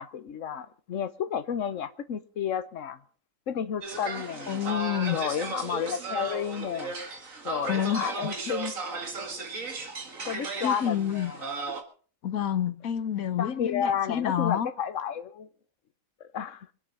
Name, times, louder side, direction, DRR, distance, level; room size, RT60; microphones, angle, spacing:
voice 1, 0.0-3.0 3.5-4.6 5.1-6.9 7.4-9.0 10.3-11.5 13.4-15.5 16.2-16.7, left 8 dB, 70° left, 1.4 m, -32 dB
sound 1, 3.8-11.8, right 3 dB, 75° right, 2.5 m, -35 dB
voice 2, 4.5-5.2 7.7-8.1 10.6-11.3 12.2-14.7, left 9 dB, 85° left, 1.5 m, -28 dB
25.0 x 8.6 x 5.5 m
omnidirectional pair, 1.4 m